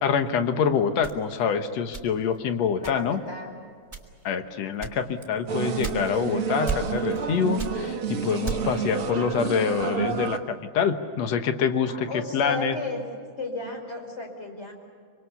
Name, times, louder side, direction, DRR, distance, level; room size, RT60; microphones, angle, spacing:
voice 1, 0.0-3.2 4.2-12.1 12.3-12.8, left 6 dB, 65° left, 8 dB, 1.7 m, -26 dB
sound 1, 1.0-2.4 2.8-3.3 3.8-4.3 4.8-6.3 6.6-7.3 7.6-8.9, right 5 dB, 10° right, 1.9 m, -34 dB
voice 2, 2.8-3.5 11.9-13.0 13.4-14.7, left 2 dB, 15° left, 3 dB, 4.7 m, -34 dB
sound 2, 5.5-10.4, right 6 dB, 55° right, 1.5 m, -29 dB
25.5 x 25.0 x 7.1 m, 2.1 s
omnidirectional pair, 4.6 m